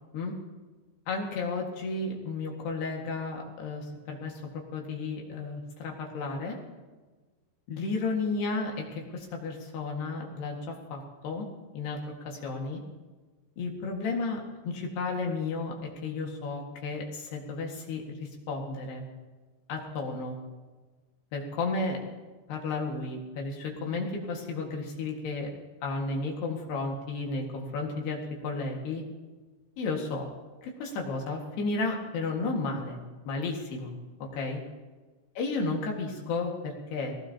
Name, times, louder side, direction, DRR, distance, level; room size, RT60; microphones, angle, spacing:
voice 1, 1.1-6.6 7.7-11.5 11.7-12.0 12.3-12.8 13.6-19.0 19.7-20.4 21.3-22.0 22.5-25.5 25.8-29.0 29.8-30.3 30.6-33.0 33.3-33.9 34.3-34.6 35.4-37.1, left 3 dB, 65° left, 0 dB, 3.7 m, -33 dB
22.0 x 18.0 x 2.9 m, 1.3 s
omnidirectional pair, 5.2 m